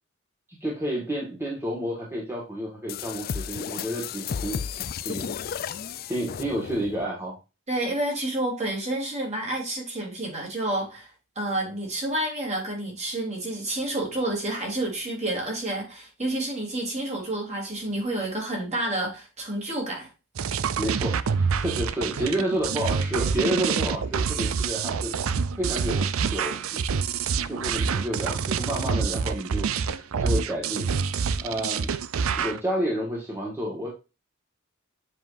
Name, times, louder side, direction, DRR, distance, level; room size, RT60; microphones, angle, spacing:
voice 1, 0.6-4.6 5.0-5.3 6.1-7.3 20.8-25.2 25.6-27.0 27.4-30.9 31.4-31.9 32.3-33.9, equal, 10° right, 1.7 m, -30 dB
sound 1, 2.9-7.0, left 7 dB, 45° left, 0.4 m, -33 dB
voice 2, 7.7-11.1 11.3-20.1, right 1 dB, 35° right, 3.1 m, -29 dB
sound 2, 20.4-32.6, right 6 dB, 70° right, 0.5 m, -27 dB
7.6 x 5.1 x 2.6 m
head